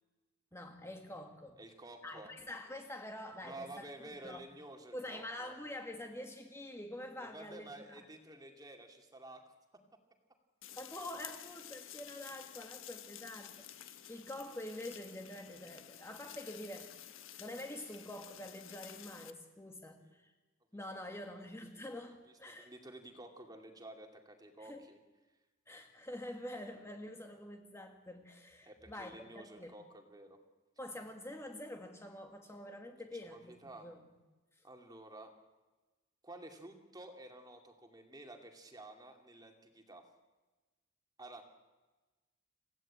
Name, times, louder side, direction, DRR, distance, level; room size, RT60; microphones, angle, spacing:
voice 1, 0.5-1.6 2.0-3.9 4.2-4.4 4.9-7.7 10.8-20.3 20.7-22.7 24.7-24.8 25.7-29.3 29.6-29.7 30.8-34.0, left 1 dB, 15° left, 4 dB, 1.8 m, -46 dB
voice 2, 1.6-2.3 3.4-5.5 7.2-9.8 20.0-20.2 20.9-21.3 21.7-21.8 22.5-25.0 28.7-30.4 33.2-33.9 34.6-35.3 36.2-40.1 41.2-41.4, right 2 dB, 20° right, 4 dB, 2.6 m, -52 dB
sound 1, 10.6-19.3, left 11 dB, 80° left, 1.4 m, -52 dB
28.0 x 17.0 x 8.8 m, 1.2 s
head